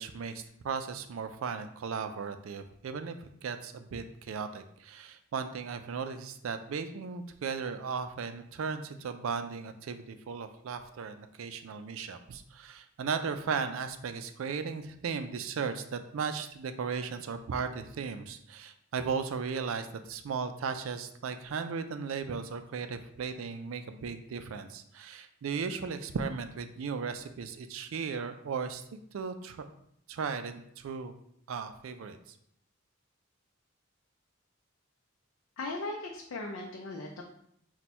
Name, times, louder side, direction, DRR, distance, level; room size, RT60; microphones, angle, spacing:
voice 1, 0.0-28.8 29.1-29.7 30.1-31.1 31.5-32.2, right 5 dB, 80° right, 9 dB, 0.4 m, -36 dB
voice 2, 35.6-37.2, left 2 dB, 80° left, 0 dB, 0.5 m, -38 dB
4.2 x 2.2 x 4.2 m, 0.71 s
head